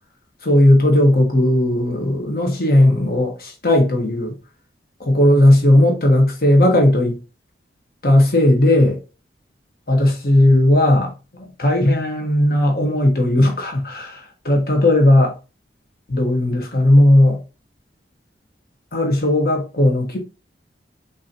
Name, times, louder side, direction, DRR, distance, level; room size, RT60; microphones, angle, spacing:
voice 1, 0.4-4.3 5.0-7.2 8.0-9.0 9.9-11.1 11.6-15.3 16.1-17.4 18.9-20.2, left 1 dB, 55° left, 1.5 m, -16 dB
6.1 x 2.9 x 2.9 m
head